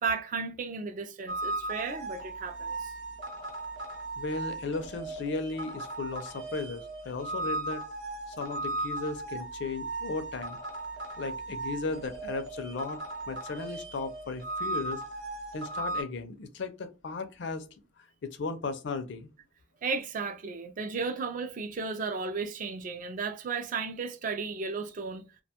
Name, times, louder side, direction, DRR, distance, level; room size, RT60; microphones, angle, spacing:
voice 1, 0.0-2.9 19.8-25.3, right 4 dB, 40° right, 0.3 m, -34 dB
sound 1, 1.3-16.0, right 2 dB, 65° right, 0.7 m, -37 dB
voice 2, 4.2-7.8 8.3-10.6 11.2-13.0 13.3-15.0 15.5-17.7 18.2-19.3, left 3 dB, 60° left, 0.4 m, -36 dB
2.4 x 2.2 x 2.8 m
head